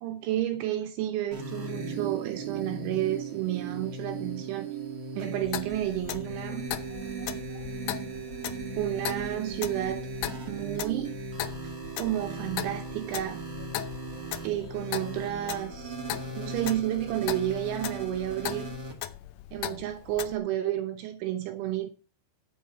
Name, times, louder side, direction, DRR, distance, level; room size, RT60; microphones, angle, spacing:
voice 1, 0.0-4.7 5.2-6.6 8.8-10.1 10.5-11.2 12.0-13.4 14.4-16.0 16.4-18.8 19.5-21.9, right 13 dB, 75° right, 4 dB, 3.3 m, -31 dB
sound 1, 1.3-18.9, right 3 dB, 40° right, 1.2 m, -37 dB
Clock, 5.4-20.4, left 12 dB, 85° left, 2.3 m, -39 dB
10.5 x 7.3 x 5.7 m, 0.32 s
omnidirectional pair, 5.7 m